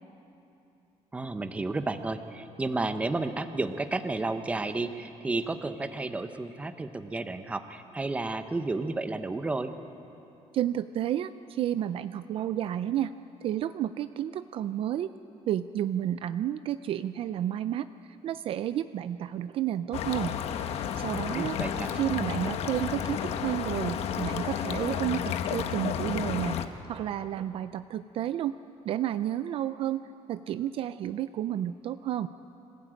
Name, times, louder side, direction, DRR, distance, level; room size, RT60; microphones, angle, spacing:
voice 1, 1.1-9.7 21.3-21.9, right 2 dB, 10° right, 9 dB, 0.8 m, -32 dB
voice 2, 10.5-13.1 13.4-15.1 15.5-20.4 20.8-21.6 21.9-28.5 28.8-30.0 30.3-32.3, right 11 dB, 50° right, 12 dB, 0.4 m, -31 dB
sound 1, 19.9-26.7, left 8 dB, 55° left, 1.0 m, -31 dB
25.5 x 16.0 x 8.9 m, 3.0 s
cardioid pair, 180°, 12 cm